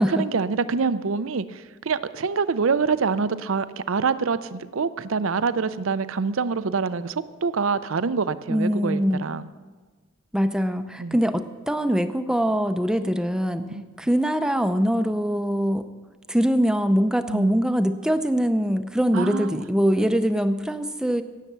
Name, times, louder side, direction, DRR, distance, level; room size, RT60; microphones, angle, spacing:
voice 1, 0.1-9.4 11.0-11.2 13.7-13.8 17.3-17.6 19.1-19.6, right 5 dB, 85° right, 14 dB, 0.6 m, -25 dB
voice 2, 8.5-9.2 10.3-13.7 14.0-15.9 16.3-21.2, equal, 5° right, 9 dB, 0.5 m, -23 dB
17.5 x 7.4 x 6.8 m, 1.3 s
head